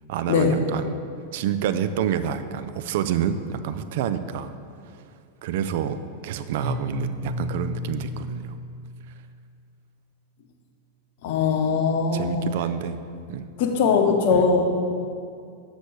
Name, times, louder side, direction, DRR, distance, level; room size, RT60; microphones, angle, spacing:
voice 1, 0.1-0.9 1.3-4.5 4.9-5.0 5.4-8.6 12.1-13.0 13.3-13.5 14.3-14.5, right 9 dB, 50° right, 11 dB, 0.4 m, -28 dB
Keyboard (musical), 6.6-9.5, left 1 dB, 80° right, 1.7 m, -33 dB
voice 2, 11.2-12.5 13.6-14.7, left 5 dB, 50° left, 4 dB, 0.8 m, -21 dB
6.8 x 6.1 x 4.7 m, 2.3 s
figure-of-eight pair, 90°, 0 cm